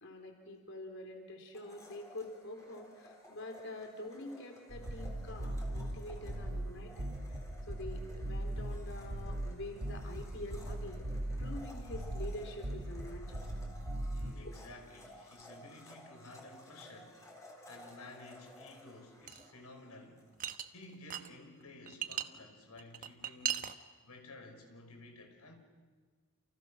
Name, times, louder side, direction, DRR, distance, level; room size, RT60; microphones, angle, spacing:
voice 1, 0.0-7.4 7.7-11.1 11.4-13.4, left 1 dB, 55° left, 3.7 m, -46 dB
Domestic sounds home sounds, 1.5-20.3, left 1 dB, 15° left, 3.9 m, -56 dB
sound 1, 4.7-14.3, right 1 dB, 80° right, 2.2 m, -40 dB
voice 2, 14.1-17.3 17.7-20.3 20.7-23.7 24.0-25.5, left 2 dB, 85° left, 5.4 m, -53 dB
sound 2, 19.3-19.5 20.4-21.3 21.6-22.3 22.8-23.7, right 10 dB, 35° right, 1.0 m, -37 dB
29.0 x 29.0 x 6.3 m
head